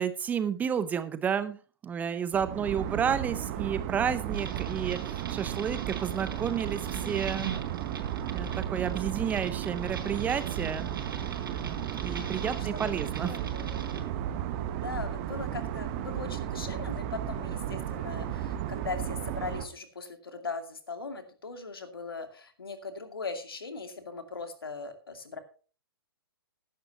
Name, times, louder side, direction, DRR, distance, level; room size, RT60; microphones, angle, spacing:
voice 1, 0.0-1.6 1.8-6.8 7.1-7.5 8.3-10.9 11.5-13.3, right 7 dB, 10° right, 14 dB, 0.6 m, -31 dB
sound 1, 2.3-19.7, right 10 dB, 30° right, 1.2 m, -34 dB
Geiger Counter Effect, 4.3-14.0, right 6 dB, 60° right, 4.1 m, -43 dB
voice 2, 12.3-12.7 13.2-13.9 14.6-25.4, left 4 dB, 70° left, 7 dB, 2.4 m, -39 dB
15.0 x 11.0 x 2.9 m, 0.37 s
figure-of-eight pair, 120°, 13 cm